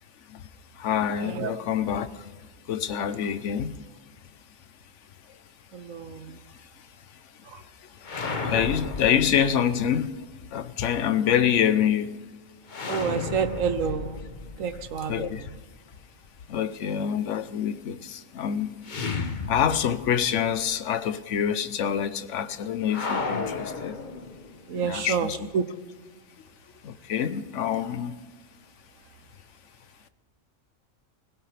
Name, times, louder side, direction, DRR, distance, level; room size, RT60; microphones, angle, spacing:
voice 1, 0.7-2.3 2.7-3.8 6.3-6.7 7.6-10.2 10.5-12.2 15.1-15.5 16.5-18.8 19.5-24.0 24.7-25.5 26.8-28.2, left 8 dB, 70° left, 1.1 m, -26 dB
voice 2, 5.7-6.3 7.5-7.6 12.9-14.2 14.6-15.3 24.7-25.6, right 6 dB, 85° right, 1.3 m, -28 dB
sound 1, 8.0-10.0 12.7-15.7 18.8-20.2 20.5-20.6 22.9-24.6, left 4 dB, 40° left, 1.1 m, -33 dB
20.5 x 17.0 x 3.4 m
omnidirectional pair, 1.3 m